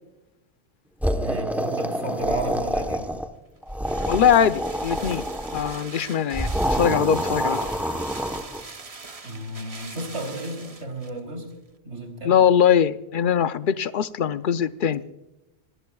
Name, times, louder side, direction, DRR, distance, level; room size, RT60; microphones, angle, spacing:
sound 1, 1.0-3.3 3.6-5.8 6.3-8.6, equal, ahead, 0.9 m, -27 dB
voice 1, 1.2-3.1 9.2-11.5 11.8-12.4, right 2 dB, 90° right, 4 dB, 3.7 m, -33 dB
sound 2, 3.0-11.2 11.5-11.6, right 4 dB, 35° right, 1.0 m, -42 dB
voice 2, 4.1-5.2 5.5-7.7 12.2-15.0, left 8 dB, 55° left, 13 dB, 0.7 m, -21 dB
26.0 x 19.0 x 2.3 m, 1.0 s
omnidirectional pair, 1.1 m